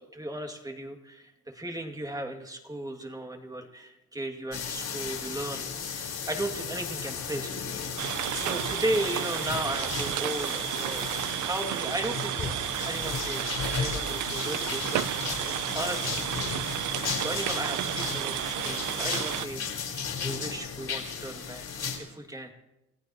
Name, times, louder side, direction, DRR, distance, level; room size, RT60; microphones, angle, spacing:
voice 1, 0.0-7.6 7.9-8.0 8.3-11.0 11.4-15.0 15.7-16.3 17.2-19.7 20.2-21.7 22.0-22.5, right 1 dB, 10° right, 4 dB, 2.3 m, -35 dB
sound 1, 4.5-22.0, left 6 dB, 60° left, 4.4 m, -35 dB
sound 2, 8.0-19.5, right 14 dB, 75° right, 0.6 m, -32 dB
29.5 x 15.0 x 3.0 m, 0.96 s
cardioid pair, 90°, 30 cm